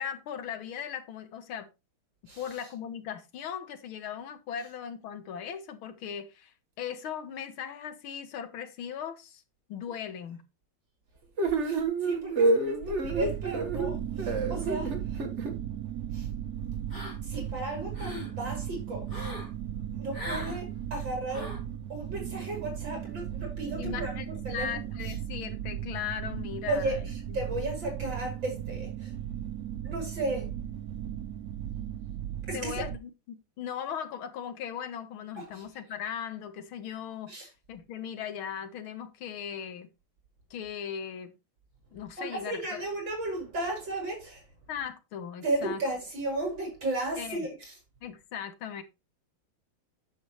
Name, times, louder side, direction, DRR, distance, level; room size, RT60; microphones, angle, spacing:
voice 1, 0.0-1.7 2.4-9.4 9.7-10.4 23.8-27.0 27.3-27.4 32.5-39.9 40.5-41.3 41.9-42.6 44.7-45.8 47.2-47.5 48.0-48.8, left 8 dB, 80° left, 1.9 m, -38 dB
sound 1, 11.4-15.5, right 3 dB, 40° right, 1.3 m, -28 dB
voice 2, 11.6-15.2 16.1-16.3 17.2-19.3 20.0-21.5 21.9-24.8 26.7-29.1 29.8-30.5 32.5-32.8 35.4-35.6 37.3-37.5 42.2-44.4 45.4-47.7, right 2 dB, 60° right, 5.6 m, -34 dB
sound 2, 13.0-33.0, right 10 dB, 75° right, 0.8 m, -36 dB
sound 3, 16.9-17.4 17.8-18.3 19.1-19.5 20.1-20.6 21.3-21.7, left 2 dB, 30° left, 4.8 m, -39 dB
9.5 x 7.1 x 2.9 m
omnidirectional pair, 2.3 m